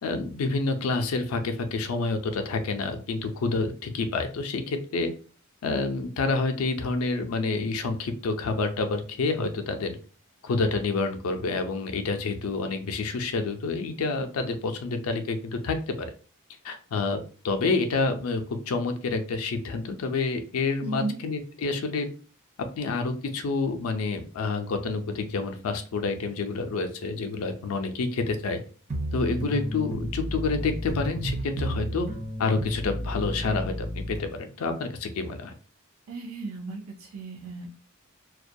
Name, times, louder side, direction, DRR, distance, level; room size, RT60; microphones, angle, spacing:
voice 1, 0.0-5.1 5.6-10.0 10.4-16.1 16.6-17.2 17.4-22.1 22.8-28.6 29.1-32.1 32.4-35.5, left 3 dB, 80° left, 6 dB, 0.4 m, -28 dB
voice 2, 20.8-21.2 36.1-37.7, right 2 dB, 85° right, 1 dB, 0.4 m, -35 dB
sound 1, 28.9-34.2, equal, 30° right, 0.5 m, -32 dB
2.2 x 2.1 x 2.6 m, 0.40 s
head